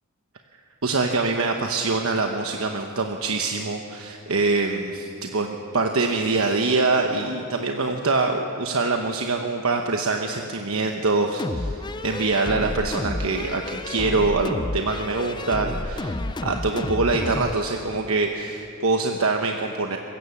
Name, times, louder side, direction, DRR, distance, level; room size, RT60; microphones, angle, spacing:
voice 1, 0.8-20.0, right 3 dB, 85° right, 3 dB, 1.1 m, -24 dB
sound 1, 11.4-17.6, left 2 dB, 20° left, 0.6 m, -30 dB
24.0 x 16.0 x 7.2 m, 2.6 s
head